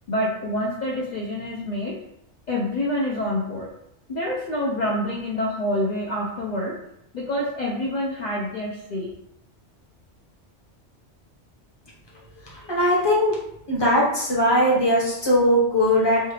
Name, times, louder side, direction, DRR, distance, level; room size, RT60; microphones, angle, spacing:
voice 1, 0.1-2.0 2.5-3.7 4.1-6.8 7.1-9.1, left 1 dB, 55° left, -4 dB, 0.5 m, -27 dB
voice 2, 12.5-13.4 13.7-16.2, equal, 25° left, -5 dB, 0.8 m, -20 dB
3.1 x 2.3 x 3.2 m, 0.78 s
omnidirectional pair, 1.2 m